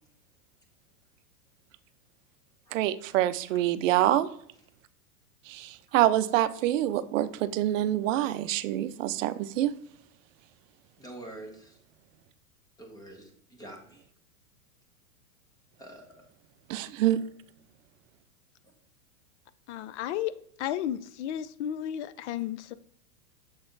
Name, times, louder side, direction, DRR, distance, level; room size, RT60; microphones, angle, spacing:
voice 1, 2.7-4.3 5.5-9.7 16.7-17.2, right 13 dB, 60° right, 14 dB, 0.6 m, -26 dB
voice 2, 11.0-11.8 12.8-14.0 15.8-16.2, right 1 dB, 10° left, 2 dB, 1.1 m, -46 dB
voice 3, 19.7-20.3 20.6-22.7, left 11 dB, 50° left, 15 dB, 0.5 m, -33 dB
6.8 x 4.2 x 3.8 m, 0.65 s
supercardioid pair, 145°, 45 cm